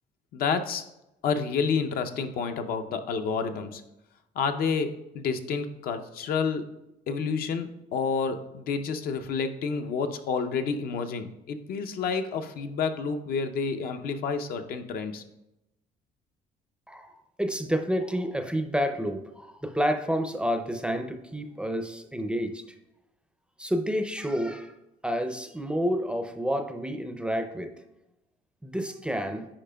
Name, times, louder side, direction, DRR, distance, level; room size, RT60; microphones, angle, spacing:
voice 1, 0.3-0.8 1.2-3.8 4.4-6.6 7.1-15.2, left 5 dB, 60° left, 7 dB, 0.6 m, -29 dB
voice 2, 17.4-22.8 23.6-24.7 25.0-27.8 28.6-29.5, equal, 5° right, 6 dB, 0.5 m, -29 dB
8.6 x 4.9 x 2.2 m, 0.90 s
cardioid pair, 110°, 17 cm